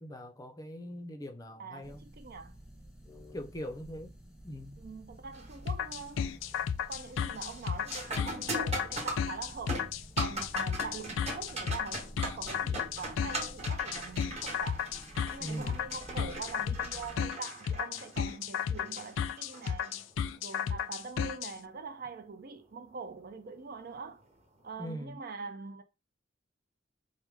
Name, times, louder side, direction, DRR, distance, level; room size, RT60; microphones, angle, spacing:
voice 1, 0.0-2.0 3.1-4.1 4.4-4.8 15.4-15.9 24.8-25.2, equal, 20° left, 0.5 m, -42 dB
voice 2, 1.6-2.5 4.8-6.3 6.9-14.9 15.3-20.1 20.4-24.2 24.6-25.8, right 4 dB, 50° right, 0.6 m, -44 dB
sound 1, 1.8-17.3, right 1 dB, 5° right, 0.9 m, -52 dB
sound 2, 5.3-5.7 6.1-6.6 6.9-20.4 22.9-23.0 23.9-24.1, right 2 dB, 35° right, 1.2 m, -41 dB
sound 3, 5.7-21.5, left 7 dB, 80° left, 0.3 m, -33 dB
4.7 x 2.1 x 3.4 m
head